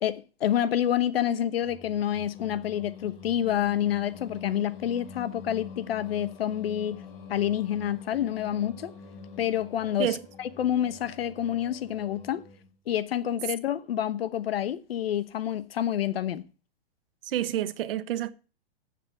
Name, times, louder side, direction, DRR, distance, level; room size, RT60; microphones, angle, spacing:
voice 1, 0.0-7.0 7.3-8.9 9.4-12.4 12.9-16.5, left 11 dB, 75° left, 1.1 m, -28 dB
Singing, 1.6-12.8, left 5 dB, 55° left, 3.1 m, -46 dB
voice 2, 17.2-18.3, right 11 dB, 65° right, 1.2 m, -28 dB
8.1 x 7.4 x 7.1 m
hypercardioid pair, 135°, 30 cm